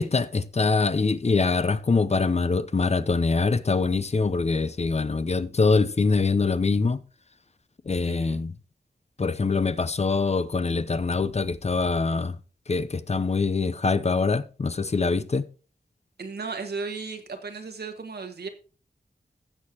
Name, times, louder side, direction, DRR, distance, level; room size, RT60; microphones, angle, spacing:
voice 1, 0.0-7.0 7.9-8.5 9.2-12.4 12.7-15.4, left 4 dB, 40° left, 0.7 m, -24 dB
voice 2, 8.0-8.4 16.2-18.5, right 4 dB, 85° right, 1.6 m, -35 dB
15.5 x 6.6 x 2.9 m
wide cardioid pair, 65°, 16 cm